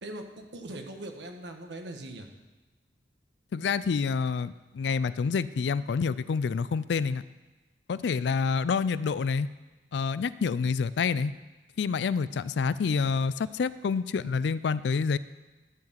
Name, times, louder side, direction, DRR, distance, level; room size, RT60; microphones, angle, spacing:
voice 1, 0.0-2.3, right 1 dB, 70° right, 4 dB, 1.3 m, -41 dB
voice 2, 3.5-7.2 7.9-9.5 9.9-11.3 11.8-15.2, left 5 dB, 70° left, 17 dB, 0.4 m, -28 dB
12.5 x 4.8 x 7.5 m, 1.2 s
head